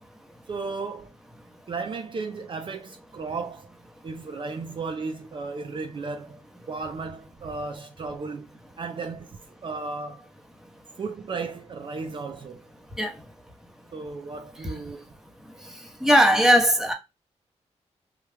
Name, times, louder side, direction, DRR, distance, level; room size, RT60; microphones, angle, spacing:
voice 1, 0.5-1.1 1.7-3.7 4.0-8.5 8.8-10.3 11.0-12.6 13.9-15.1, right 4 dB, 45° right, 0.5 m, -35 dB
voice 2, 16.0-16.9, equal, 5° right, 0.9 m, -19 dB
3.1 x 2.4 x 3.3 m
cardioid pair, 80°, 12 cm